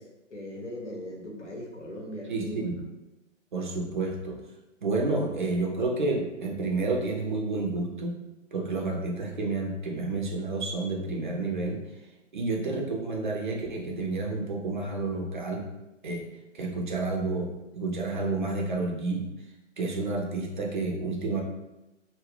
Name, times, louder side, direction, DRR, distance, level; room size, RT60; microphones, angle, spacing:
voice 1, 0.0-2.6, equal, 70° left, -1 dB, 0.9 m, -39 dB
voice 2, 2.3-2.8 3.5-4.4 4.8-8.1 8.5-11.8 12.3-15.7 16.0-16.2 16.5-19.3 19.8-21.4, right 3 dB, 40° right, 0 dB, 0.5 m, -30 dB
2.5 x 2.1 x 3.2 m, 0.98 s
figure-of-eight pair, 130°, 37 cm